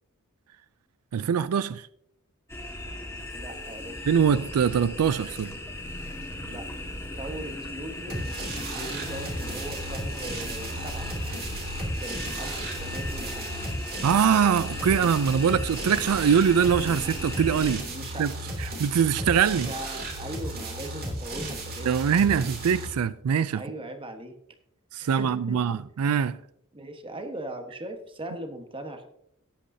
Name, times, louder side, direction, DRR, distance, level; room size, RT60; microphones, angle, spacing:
voice 1, 1.1-1.9 4.1-5.6 14.0-17.9 18.2-18.3 18.6-19.7 21.9-23.6 24.9-26.4, right 7 dB, 85° right, 0.4 m, -23 dB
sound 1, 2.5-17.8, left 1 dB, 10° left, 1.7 m, -37 dB
voice 2, 3.3-4.1 6.4-6.7 7.1-8.2 8.7-11.1 12.0-13.7 17.8-18.3 19.7-22.5 23.5-24.3 25.0-25.6 26.7-29.1, right 1 dB, 25° right, 1.3 m, -39 dB
sound 2, 8.1-22.9, right 1 dB, 45° right, 2.6 m, -35 dB
17.0 x 8.3 x 2.7 m
head